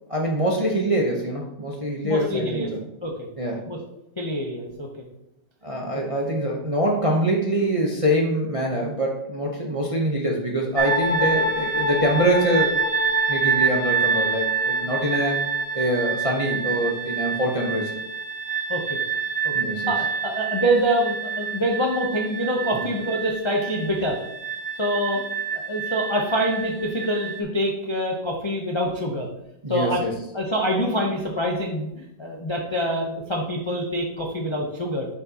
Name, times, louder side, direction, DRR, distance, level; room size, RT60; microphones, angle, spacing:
voice 1, 0.1-2.6 3.4-3.6 5.6-12.8 13.3-15.4 15.7-17.9 19.5-19.9 22.8-22.9 29.6-30.2, right 1 dB, 30° right, -1 dB, 0.6 m, -24 dB
voice 2, 2.0-2.7 3.0-3.3 3.7-3.8 4.2-4.9 5.9-6.0 18.7-19.0 19.4-19.5 19.9-24.2 24.8-25.2 25.6-29.3 29.7-30.0 30.3-35.1, equal, 35° left, -1 dB, 0.4 m, -25 dB
sound 1, 10.8-27.4, right 4 dB, 70° right, 1.9 m, -27 dB
7.5 x 6.2 x 2.9 m, 0.83 s
omnidirectional pair, 1.9 m